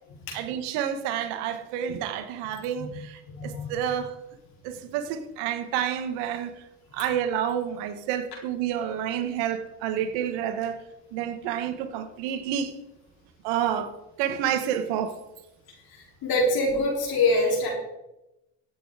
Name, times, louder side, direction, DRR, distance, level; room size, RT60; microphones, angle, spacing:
voice 1, 0.3-4.2 4.6-6.5 6.9-10.8 11.1-12.8 13.4-15.2, right 9 dB, 80° right, 1.4 m, -29 dB
voice 2, 3.3-3.7 15.9-17.7, left 2 dB, 65° left, 4.4 m, -25 dB
14.5 x 7.8 x 4.9 m
supercardioid pair, 90°, 41 cm